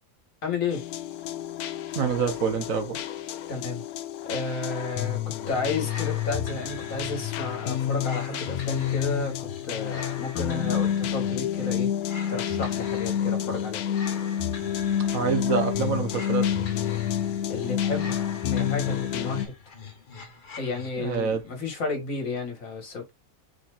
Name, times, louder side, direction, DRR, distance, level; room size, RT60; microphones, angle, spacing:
voice 1, 0.4-0.8 3.5-3.8 4.2-5.2 5.5-11.9 12.3-13.9 17.5-18.2 18.5-19.5 20.6-23.1, left 3 dB, 65° left, 2.1 m, -32 dB
sound 1, 0.7-19.5, left 10 dB, 85° left, 1.1 m, -29 dB
voice 2, 1.9-3.0 15.1-16.5 21.0-21.4, right 6 dB, 70° right, 1.3 m, -26 dB
sound 2, 5.4-21.3, left 6 dB, 40° left, 1.1 m, -41 dB
4.9 x 4.2 x 2.5 m
omnidirectional pair, 1.5 m